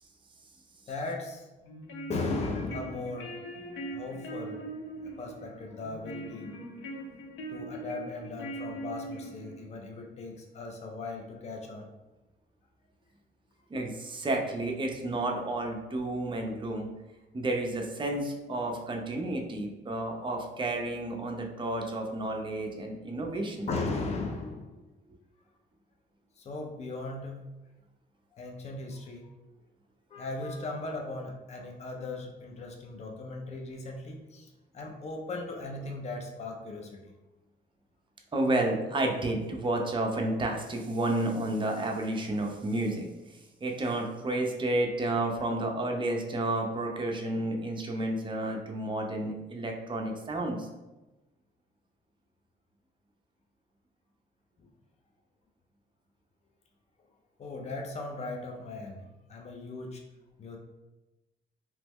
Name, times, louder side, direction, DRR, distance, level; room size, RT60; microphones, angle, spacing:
voice 1, 0.9-1.5 2.1-3.3 3.9-4.6 5.0-6.5 7.5-11.8 23.7-24.7 26.4-27.4 28.3-29.3 30.1-36.9 54.6-54.7 57.4-60.0 60.4-60.6, left 3 dB, 35° left, 2 dB, 0.5 m, -37 dB
sound 1, 1.6-9.7, right 1 dB, 85° left, 0.6 m, -41 dB
voice 2, 13.7-16.9 17.3-23.7 38.3-43.1 43.6-50.7, right 1 dB, 25° right, 1 dB, 0.5 m, -31 dB
3.0 x 2.1 x 3.5 m, 1.1 s
cardioid pair, 90°, 20 cm